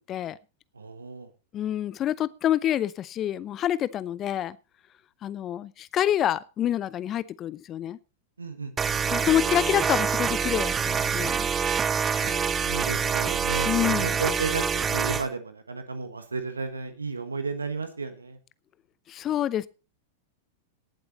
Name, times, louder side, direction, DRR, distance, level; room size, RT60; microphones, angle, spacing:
voice 1, 0.7-1.3 8.4-8.7 12.0-18.4, right 4 dB, 85° right, 1.5 m, -34 dB
voice 2, 1.5-4.6 5.2-8.0 9.1-11.5 13.6-14.1 19.1-19.7, left 11 dB, 30° left, 0.6 m, -27 dB
sound 1, 8.8-15.3, right 6 dB, 20° right, 0.7 m, -26 dB
18.5 x 8.0 x 4.0 m
figure-of-eight pair, 95°, 0 cm